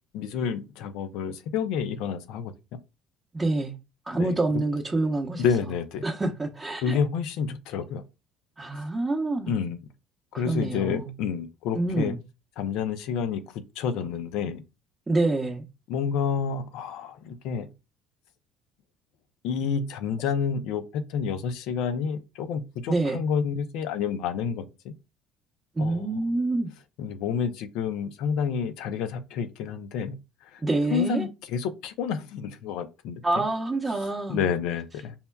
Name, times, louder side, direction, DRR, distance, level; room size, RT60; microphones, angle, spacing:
voice 1, 0.1-2.5 4.2-4.4 5.4-6.0 6.8-8.0 9.5-9.8 10.3-12.1 12.6-14.6 15.9-17.7 19.4-24.9 25.8-26.2 27.0-30.1 30.5-30.6 30.9-33.4 34.3-35.1, left 6 dB, 75° left, 0.5 m, -29 dB
voice 2, 3.3-3.7 4.1-5.5 6.0-7.0 8.6-9.6 10.3-11.1 11.7-12.2 15.1-15.6 22.9-23.2 25.8-26.7 30.6-31.3 33.2-34.5, right 2 dB, 20° right, 0.7 m, -27 dB
5.4 x 2.1 x 2.2 m
supercardioid pair, 80°, 0 cm